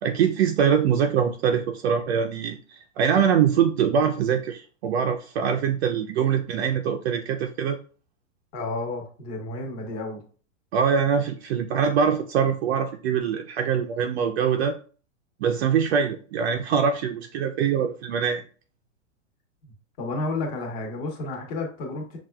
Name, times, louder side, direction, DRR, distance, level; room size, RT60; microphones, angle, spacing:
voice 1, 0.0-7.8 10.7-14.8 15.4-18.4, right 7 dB, 55° right, 5 dB, 0.5 m, -23 dB
voice 2, 8.5-10.2 19.6-19.7 20.0-22.2, left 2 dB, 35° left, 1 dB, 1.2 m, -31 dB
5.8 x 2.4 x 2.2 m, 0.39 s
hypercardioid pair, 145°, 39 cm